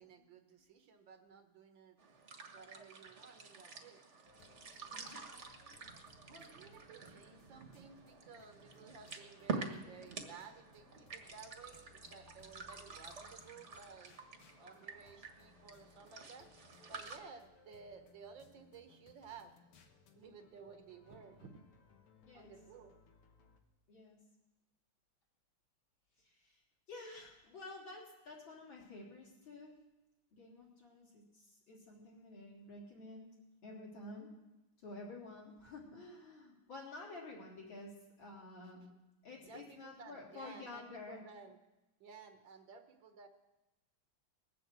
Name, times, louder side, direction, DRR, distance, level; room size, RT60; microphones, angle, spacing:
voice 1, 0.0-2.0 2.5-4.0 6.3-14.1 14.6-16.5 16.9-19.5 20.2-21.6 22.3-22.9 38.6-38.9 39.4-41.6 42.0-43.3, right 5 dB, 65° right, 7 dB, 1.7 m, -55 dB
sound 1, 2.0-17.2, right 4 dB, 40° right, 1.3 m, -48 dB
sound 2, 4.3-23.6, left 5 dB, 90° left, 2.2 m, -66 dB
voice 2, 4.9-5.3 22.2-22.5 23.9-24.2 26.2-26.6 26.9-29.7 30.3-33.3 33.6-34.3 34.8-37.9 38.2-38.9 39.2-41.2, left 2 dB, 60° left, -3 dB, 4.0 m, -51 dB
19.5 x 7.7 x 8.0 m, 1.0 s
omnidirectional pair, 2.4 m